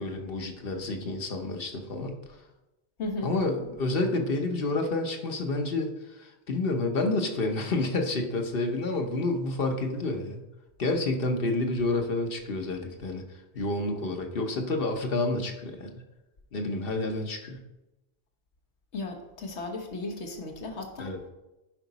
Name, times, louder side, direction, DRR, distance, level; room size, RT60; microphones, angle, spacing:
voice 1, 0.0-2.2 3.2-10.4 10.8-13.2 13.5-15.9 16.5-17.6 21.0-21.2, left 2 dB, 60° left, 4 dB, 1.1 m, -29 dB
voice 2, 3.0-3.3 18.9-21.1, left 2 dB, 80° left, 4 dB, 1.4 m, -35 dB
10.5 x 5.1 x 4.0 m, 1.0 s
omnidirectional pair, 1.1 m